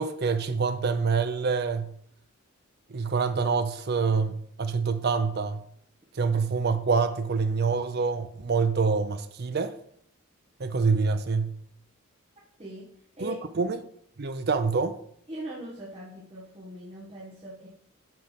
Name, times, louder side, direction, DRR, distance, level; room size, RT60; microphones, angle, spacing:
voice 1, 0.0-1.9 2.9-5.6 6.1-9.7 10.6-11.5 13.2-13.8 14.2-14.9, right 4 dB, 45° right, 0.5 m, -26 dB
voice 2, 15.3-17.7, equal, 25° right, 1.3 m, -40 dB
7.6 x 3.3 x 5.7 m
head